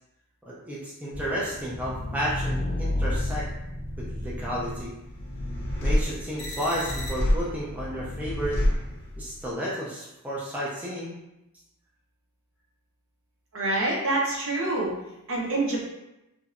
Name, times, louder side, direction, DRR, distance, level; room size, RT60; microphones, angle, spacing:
voice 1, 0.5-3.5 4.0-4.9 5.8-8.6 9.2-11.2, equal, 5° right, -7 dB, 0.3 m, -32 dB
sound 1, 1.1-9.5, left 1 dB, 50° left, 0.5 m, -29 dB
voice 2, 13.5-14.9 15.3-15.9, right 2 dB, 60° right, -3 dB, 0.7 m, -26 dB
2.6 x 2.0 x 2.4 m, 0.91 s
head